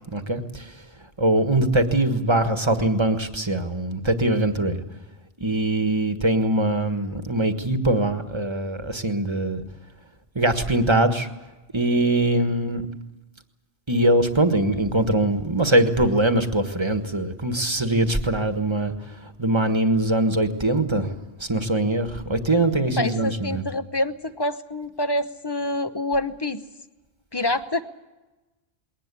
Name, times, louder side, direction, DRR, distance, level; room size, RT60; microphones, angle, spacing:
voice 1, 0.1-0.7 1.2-4.8 5.4-9.6 10.3-11.3 11.7-12.8 13.9-18.9 19.2-21.1 21.4-23.6, right 1 dB, 25° right, 7 dB, 1.5 m, -22 dB
voice 2, 23.0-26.6 27.3-27.8, left 1 dB, 25° left, 10 dB, 1.0 m, -26 dB
21.5 x 18.5 x 8.4 m, 1.1 s
omnidirectional pair, 1.1 m